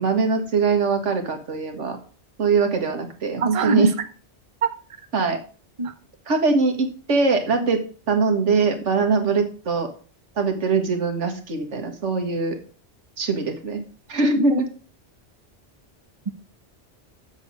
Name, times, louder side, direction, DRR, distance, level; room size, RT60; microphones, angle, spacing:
voice 1, 0.0-2.0 2.4-3.9 5.1-5.4 6.3-9.9 10.4-12.6 13.2-13.8 14.1-14.6, right 4 dB, 85° right, 6 dB, 1.9 m, -22 dB
voice 2, 3.4-3.9 4.6-4.7 5.8-5.9 14.4-14.6, right 3 dB, 30° right, 8 dB, 0.9 m, -22 dB
7.4 x 7.2 x 5.2 m, 0.39 s
omnidirectional pair, 1.2 m